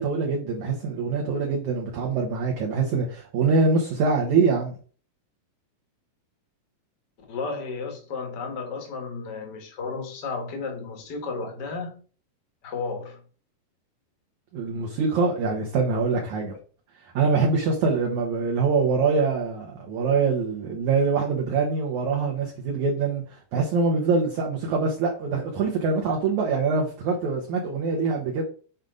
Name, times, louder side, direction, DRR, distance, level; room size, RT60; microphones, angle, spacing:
voice 1, 0.0-4.7 14.5-16.5 17.1-28.4, right 4 dB, 70° right, 1.9 m, -24 dB
voice 2, 7.3-12.0 12.6-13.2, left 4 dB, 50° left, 1.2 m, -33 dB
7.3 x 5.3 x 3.9 m
omnidirectional pair, 4.9 m